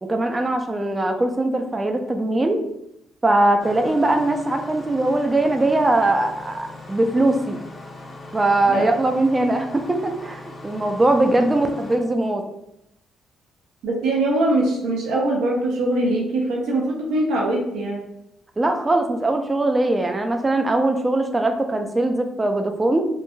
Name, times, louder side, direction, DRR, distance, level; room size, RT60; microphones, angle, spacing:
voice 1, 0.0-2.6 3.2-7.6 8.3-12.4 18.6-23.0, right 2 dB, 20° right, 5 dB, 0.3 m, -21 dB
Engine starting, 3.6-12.0, left 2 dB, 35° left, 0.6 m, -40 dB
voice 2, 13.8-18.0, right 2 dB, 85° right, -2 dB, 0.5 m, -22 dB
3.0 x 2.4 x 2.2 m, 0.82 s
cardioid pair, 90°, 0 cm